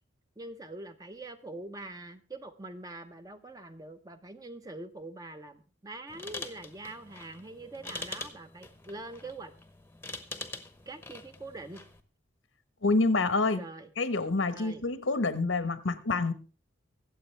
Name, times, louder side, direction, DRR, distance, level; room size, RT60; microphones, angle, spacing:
voice 1, 0.4-9.5 10.9-11.8 13.5-13.9 14.5-14.9, right 2 dB, 20° right, 0.9 m, -44 dB
sound 1, 6.1-12.0, left 2 dB, 10° left, 1.0 m, -44 dB
voice 2, 12.8-13.6 14.0-16.3, left 3 dB, 85° left, 1.3 m, -27 dB
24.0 x 8.0 x 3.4 m
head